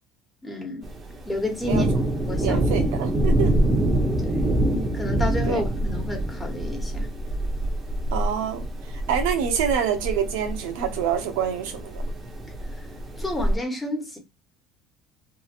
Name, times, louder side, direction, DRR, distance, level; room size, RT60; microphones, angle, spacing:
voice 1, 0.4-0.9 1.3-1.9 2.2-2.6 4.2-4.5 4.9-7.1 12.7-12.9 13.2-14.2, left 1 dB, 10° left, 1.1 m, -30 dB
Thunder, 0.8-13.5, right 1 dB, 30° right, 0.8 m, -26 dB
voice 2, 2.4-3.5 5.5-5.6 8.1-8.6 9.1-12.0, right 8 dB, 85° right, 0.7 m, -26 dB
3.0 x 2.4 x 2.5 m
supercardioid pair, 100°, 0 cm